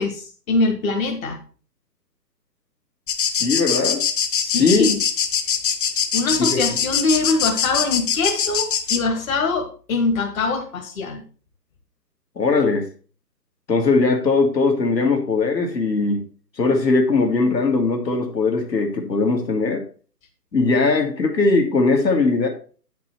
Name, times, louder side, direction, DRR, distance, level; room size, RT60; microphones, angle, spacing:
voice 1, 0.0-1.4 4.4-5.0 6.1-11.2, left 3 dB, 55° left, 3 dB, 1.8 m, -23 dB
sound 1, 3.1-9.0, left 7 dB, 30° left, 0.9 m, -22 dB
voice 2, 3.4-4.0 4.6-4.9 6.4-6.6 12.4-12.9 13.7-16.3 16.6-19.8 20.5-22.5, left 3 dB, 85° left, 2 dB, 2.2 m, -20 dB
8.6 x 6.0 x 4.5 m, 0.39 s
figure-of-eight pair, 145°, 50 cm